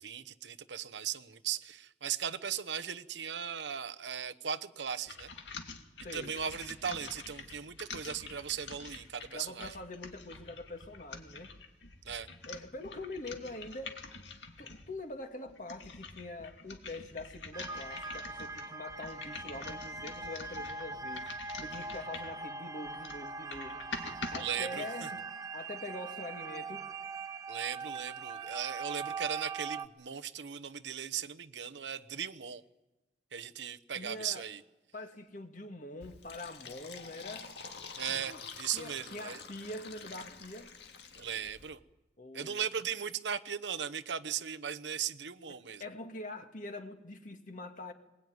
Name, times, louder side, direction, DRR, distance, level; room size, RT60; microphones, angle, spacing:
voice 1, 0.0-5.3 6.1-9.7 12.1-12.3 24.4-25.1 27.5-32.6 33.3-34.6 38.0-39.4 41.2-41.8 42.3-45.8, right 8 dB, 85° right, 0.9 m, -38 dB
sound 1, 5.1-14.9 15.5-22.4 22.8-24.4, left 4 dB, 85° left, 2.3 m, -47 dB
voice 2, 6.0-6.4 9.2-11.5 12.5-14.0 14.6-23.8 24.3-25.2 25.5-26.9 33.9-34.4 34.9-37.6 38.3-38.4 38.7-40.7 42.2-42.6 45.8-47.9, left 2 dB, 45° left, 2.0 m, -44 dB
sound 2, 17.5-29.9, right 4 dB, 20° right, 0.9 m, -41 dB
Fill (with liquid), 36.0-41.7, left 5 dB, 70° left, 2.1 m, -48 dB
22.0 x 20.5 x 9.5 m
head